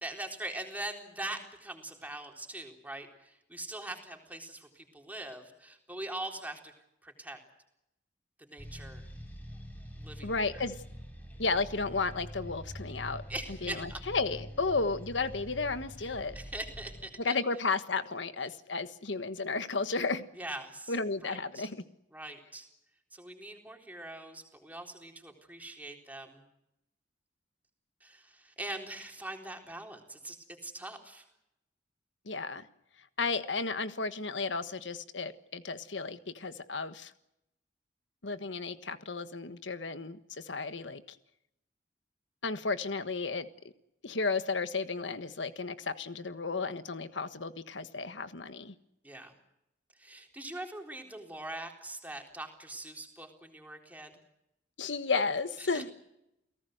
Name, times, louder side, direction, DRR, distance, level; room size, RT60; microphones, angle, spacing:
voice 1, 0.0-6.7 7.0-7.4 8.4-9.0 10.0-10.6 13.3-14.0 16.0-17.4 20.4-20.9 21.2-21.7 22.1-22.7 23.1-26.4 28.0-30.4 30.6-31.2 49.0-49.3 50.0-54.1 55.6-55.9, right 1 dB, 10° right, 3 dB, 3.9 m, -42 dB
sound 1, 8.6-17.1, equal, 10° left, 7.7 m, -45 dB
voice 2, 10.2-10.8 11.4-13.2 13.6-16.4 17.2-20.2 20.9-21.8 32.2-32.7 33.2-37.1 38.2-41.2 42.4-43.5 44.0-48.7 54.8-55.9, left 4 dB, 90° left, 11 dB, 1.4 m, -33 dB
29.5 x 18.0 x 7.9 m, 0.84 s
head